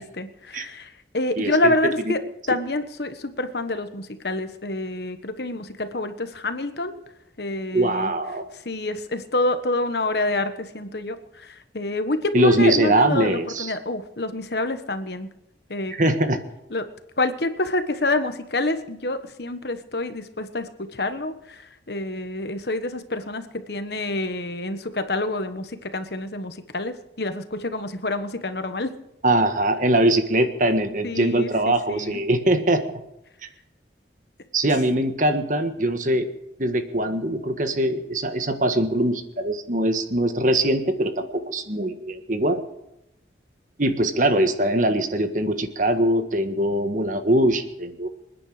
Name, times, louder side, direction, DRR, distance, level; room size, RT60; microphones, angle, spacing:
voice 1, 0.0-2.2 2.5-7.0 7.4-8.1 8.5-15.3 15.7-15.9 16.7-16.9 17.2-28.9 31.0-32.2, left 2 dB, 60° left, 9 dB, 1.3 m, -27 dB
voice 2, 1.4-1.7 7.7-8.5 12.3-13.7 16.0-16.4 29.2-32.8 34.5-36.3 36.6-42.6 43.8-48.1, right 1 dB, 45° right, 7 dB, 1.6 m, -22 dB
27.0 x 10.0 x 5.0 m, 0.87 s
head